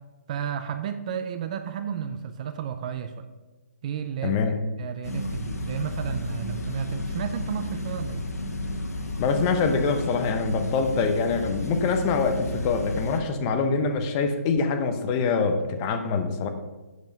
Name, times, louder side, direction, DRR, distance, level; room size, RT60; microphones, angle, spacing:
voice 1, 0.3-3.3 3.8-4.4 4.8-8.3, right 8 dB, 25° right, 9 dB, 0.4 m, -32 dB
voice 2, 4.2-4.6 9.2-16.5, left 4 dB, 20° left, 7 dB, 0.7 m, -25 dB
sound 1, 5.0-13.2, left 2 dB, 85° left, 1.5 m, -32 dB
8.1 x 7.1 x 5.3 m, 1.2 s
hypercardioid pair, 160°, 8 cm